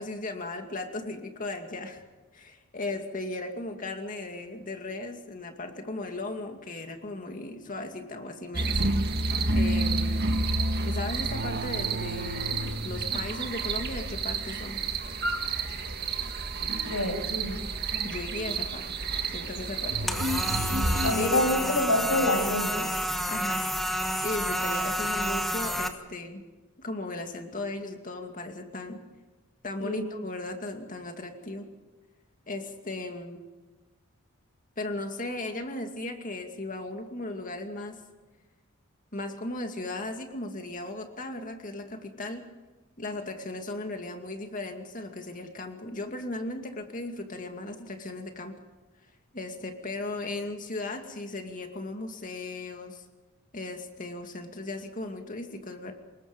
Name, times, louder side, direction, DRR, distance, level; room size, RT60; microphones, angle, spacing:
voice 1, 0.0-2.0 2.3-10.1 10.8-14.8 18.0-18.9 19.3-20.2 21.2-21.4 23.3-23.6 24.2-26.4 26.8-29.0 29.6-31.7 32.5-33.4 34.8-38.0 39.1-42.4 43.0-48.5 49.3-53.0 53.5-55.9, left 2 dB, 40° left, 4 dB, 2.4 m, -36 dB
sound 1, 8.5-21.1, right 2 dB, 45° right, 1.7 m, -29 dB
voice 2, 16.9-17.6 21.0-22.9 29.8-30.0, left 1 dB, 90° left, 3 dB, 6.6 m, -27 dB
sound 2, 20.1-25.9, equal, ahead, 1.5 m, -29 dB
26.0 x 21.0 x 5.4 m, 1.2 s
head